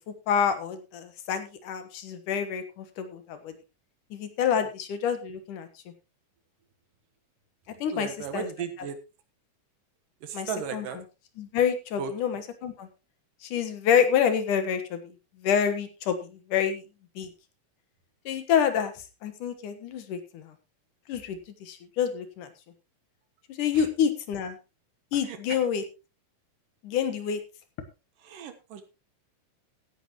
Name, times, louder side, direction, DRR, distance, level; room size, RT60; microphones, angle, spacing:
voice 1, 0.3-3.5 4.1-5.7 7.8-8.5 8.8-8.9 10.3-11.0 11.4-12.9 13.4-15.1 15.4-16.8 17.2-17.3 18.3-20.5 21.1-22.5 23.6-24.6 25.1-25.8 26.8-27.4, left 8 dB, 70° left, 9 dB, 2.8 m, -28 dB
voice 2, 7.9-9.0 10.2-11.0 12.0-12.1 25.3-25.4 28.3-28.8, right 7 dB, 75° right, 8 dB, 2.9 m, -35 dB
16.0 x 10.5 x 3.1 m, 0.28 s
omnidirectional pair, 3.9 m